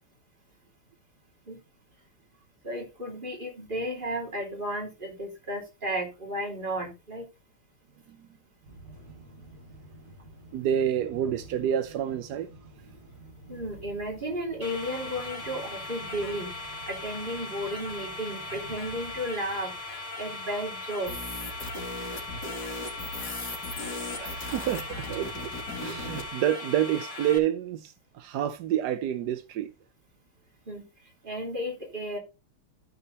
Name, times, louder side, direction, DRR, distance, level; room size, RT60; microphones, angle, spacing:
voice 1, 2.6-7.2 13.5-16.5 16.9-19.7 20.2-21.1 30.7-30.8 31.2-32.2, equal, 20° right, 3.3 m, -33 dB
sound 1, 8.6-22.3, right 1 dB, 55° right, 6.7 m, -50 dB
voice 2, 10.5-12.5 24.1-29.7, right 10 dB, 75° right, 0.9 m, -29 dB
sound 2, 14.6-27.4, left 2 dB, 65° left, 4.0 m, -39 dB
sound 3, 21.0-26.3, left 2 dB, 45° left, 3.1 m, -38 dB
13.0 x 5.0 x 4.1 m
omnidirectional pair, 2.4 m